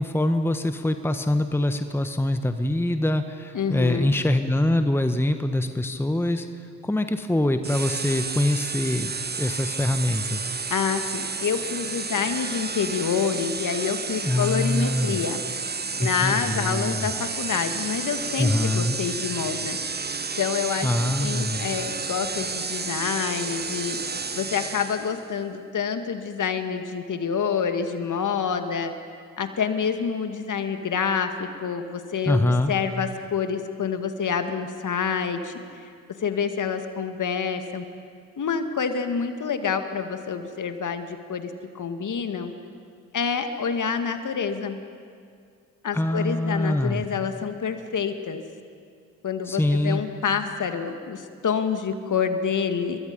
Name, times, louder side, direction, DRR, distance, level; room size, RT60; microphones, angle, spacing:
voice 1, 0.0-6.5 6.8-10.5 14.2-15.2 16.0-17.1 18.4-19.0 20.8-21.7 32.2-32.7 45.9-47.0 49.5-50.0, left 1 dB, 5° left, 8 dB, 1.4 m, -24 dB
voice 2, 3.5-4.1 10.7-15.4 16.0-19.8 20.4-20.9 21.2-24.0 24.4-28.9 29.4-35.9 36.2-37.8 38.4-42.5 43.1-44.8 45.8-48.4 49.2-53.0, left 6 dB, 45° left, 7 dB, 2.2 m, -27 dB
sound 1, 7.6-25.2, right 4 dB, 25° right, 1.4 m, -31 dB
29.5 x 23.5 x 5.4 m, 2.3 s
hypercardioid pair, 45°, 42 cm